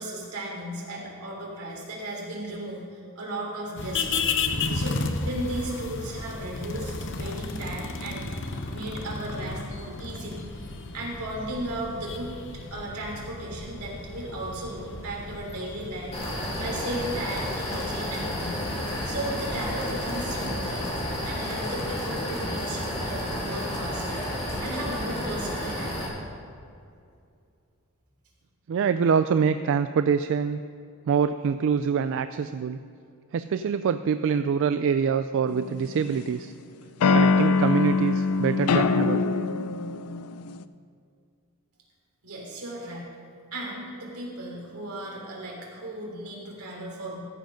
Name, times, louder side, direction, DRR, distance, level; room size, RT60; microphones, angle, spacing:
voice 1, 0.0-4.3 4.7-8.4 8.7-12.3 12.7-18.6 19.0-21.0 21.2-25.9 42.2-43.1 43.5-47.2, right 1 dB, 80° right, -2 dB, 3.1 m, -36 dB
sound 1, 3.8-21.6, left 3 dB, 60° left, 0.9 m, -34 dB
sound 2, 16.1-26.1, left 1 dB, 25° left, 2.5 m, -31 dB
voice 2, 28.7-30.6 31.1-32.8 33.3-36.5 37.1-39.2, right 6 dB, 60° right, 11 dB, 0.3 m, -25 dB
sound 3, 35.5-36.3 37.0-40.6, left 4 dB, 85° left, 0.4 m, -23 dB
14.0 x 7.7 x 5.2 m, 2.4 s
head